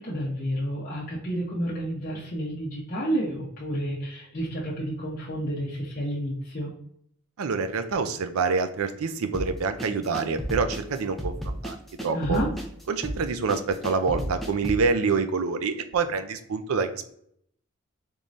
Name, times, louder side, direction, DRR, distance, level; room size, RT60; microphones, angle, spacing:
voice 1, 0.0-6.7 12.1-12.5, equal, 40° left, -6 dB, 0.7 m, -30 dB
voice 2, 7.4-11.8 12.0-12.4 12.9-17.1, right 4 dB, 85° right, 9 dB, 0.4 m, -26 dB
sound 1, 9.3-14.9, equal, ahead, 0.4 m, -33 dB
3.6 x 3.1 x 2.6 m, 0.68 s
head